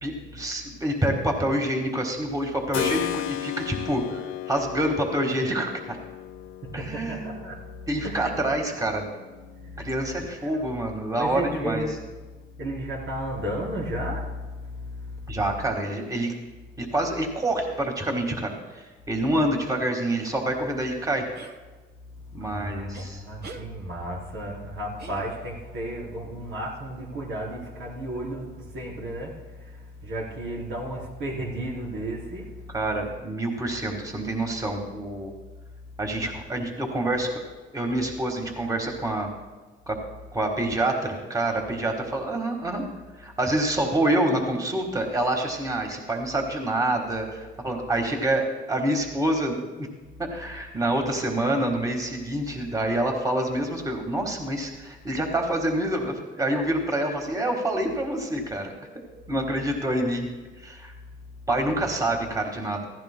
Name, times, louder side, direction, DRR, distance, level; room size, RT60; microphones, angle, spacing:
voice 1, 0.0-4.2 4.5-6.0 6.7-7.3 7.9-9.1 9.8-11.9 15.3-16.3 16.8-21.3 22.3-23.2 32.7-35.3 36.0-39.3 39.9-40.0 40.3-42.8 43.2-49.9 50.2-58.7 59.3-60.3 60.6-60.9 61.5-62.9, right 1 dB, 15° right, 2 dB, 1.6 m, -27 dB
Keyboard (musical), 2.7-11.3, left 12 dB, 90° left, 0.5 m, -36 dB
voice 2, 6.7-7.6 8.0-8.4 9.6-9.9 10.4-10.7 11.1-12.1 12.6-15.5 22.2-32.8 61.7-62.1, right 1 dB, 85° right, -3 dB, 3.7 m, -34 dB
sound 1, 21.3-21.6 22.9-23.1 23.4-23.7 25.0-25.6, right 3 dB, 55° right, 1.2 m, -43 dB
15.5 x 15.0 x 2.2 m, 1.3 s
cardioid pair, 90°, 20 cm